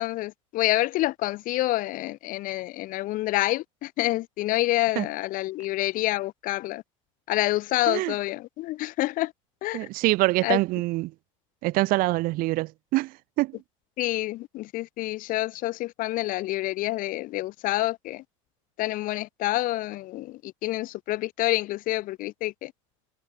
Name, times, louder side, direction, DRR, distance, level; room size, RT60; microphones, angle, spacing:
voice 1, 0.0-6.8 7.3-9.3 9.6-9.9 10.4-10.6 14.0-18.2 18.8-22.7, left 17 dB, 60° left, 3.8 m, -28 dB
voice 2, 9.7-11.1 11.6-13.6, right 20 dB, 60° right, 4.0 m, -25 dB
hypercardioid pair, 80°, 16 cm